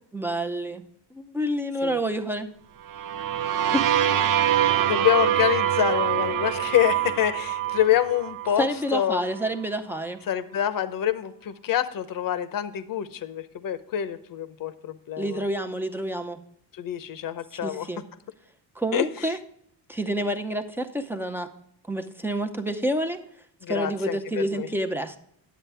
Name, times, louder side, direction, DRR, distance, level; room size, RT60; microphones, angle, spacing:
voice 1, 0.1-0.8 1.1-2.5 3.7-3.9 8.6-10.2 15.2-16.4 17.6-18.0 18.8-19.4 19.9-21.5 21.9-23.2 23.7-25.2, right 1 dB, 5° right, 5 dB, 0.7 m, -28 dB
sound 1, 2.9-8.7, right 10 dB, 50° right, 0.6 m, -24 dB
voice 2, 4.8-9.2 10.3-15.4 16.7-17.9 18.9-19.3 23.6-24.7, left 11 dB, 50° left, 13 dB, 0.9 m, -26 dB
10.5 x 8.2 x 3.4 m, 0.69 s
cardioid pair, 125°, 42 cm